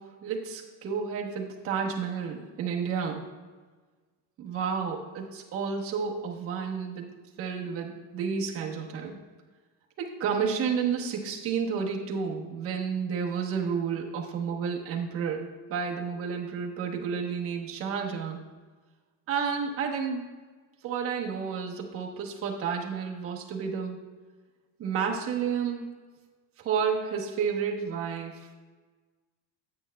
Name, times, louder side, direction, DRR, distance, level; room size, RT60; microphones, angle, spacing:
voice 1, 0.0-3.3 4.4-9.2 10.0-18.4 19.3-20.2 20.8-24.0 24.8-25.8 26.6-28.5, right 6 dB, 30° right, 0 dB, 1.0 m, -31 dB
8.8 x 8.5 x 2.2 m, 1.4 s
cardioid pair, 170°, 42 cm